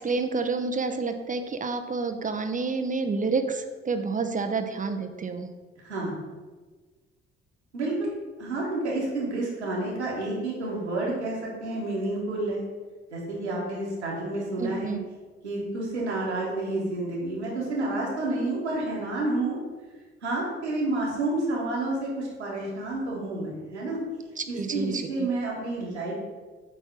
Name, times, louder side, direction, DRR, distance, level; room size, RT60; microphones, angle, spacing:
voice 1, 0.0-5.5 14.6-15.0 24.4-25.3, right 4 dB, 25° right, 7 dB, 0.8 m, -29 dB
voice 2, 7.7-8.1 8.4-12.6 13.1-14.9 15.4-19.6 20.2-24.0 24.5-26.1, right 2 dB, 85° right, -5 dB, 1.5 m, -29 dB
8.6 x 3.4 x 6.0 m, 1.3 s
figure-of-eight pair, 45°, 33 cm